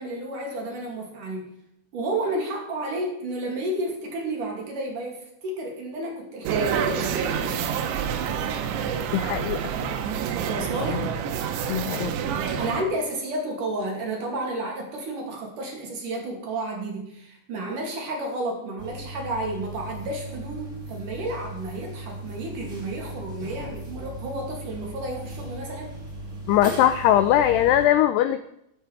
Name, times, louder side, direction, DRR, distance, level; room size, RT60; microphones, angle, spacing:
voice 1, 0.0-1.5 1.9-7.8 10.4-11.1 12.6-26.0, right 1 dB, 50° right, 0 dB, 3.5 m, -31 dB
sound 1, 6.5-12.8, right 7 dB, 75° right, 3.2 m, -27 dB
voice 2, 9.1-9.9 11.7-12.1 26.5-28.4, left 11 dB, 85° left, 11 dB, 2.3 m, -21 dB
sound 2, 18.8-27.9, right 1 dB, 25° right, 2.0 m, -38 dB
13.0 x 12.0 x 4.7 m, 0.77 s
omnidirectional pair, 5.4 m